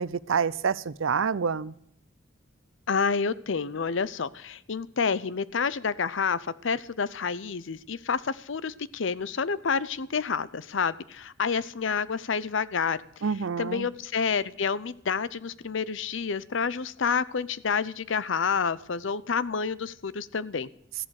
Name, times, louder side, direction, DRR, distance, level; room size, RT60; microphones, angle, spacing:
voice 1, 0.0-1.7 13.2-13.9, right 6 dB, 90° right, 19 dB, 0.6 m, -27 dB
voice 2, 2.9-13.0 13.6-20.7, left 5 dB, 70° left, 17 dB, 0.7 m, -29 dB
14.5 x 11.0 x 6.5 m, 0.71 s
head